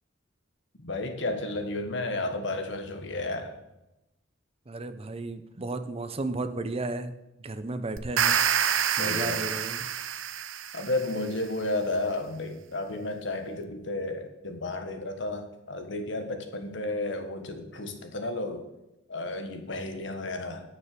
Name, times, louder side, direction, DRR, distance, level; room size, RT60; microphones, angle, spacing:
voice 1, 0.8-3.5 9.0-9.4 10.7-18.6 19.1-20.6, left 2 dB, 65° left, 7 dB, 1.4 m, -32 dB
voice 2, 4.7-8.4 9.0-9.9, right 2 dB, 30° right, 9 dB, 0.7 m, -34 dB
sound 1, 8.0-11.1, right 9 dB, 85° right, 0.7 m, -27 dB
10.0 x 6.7 x 6.7 m, 0.93 s
head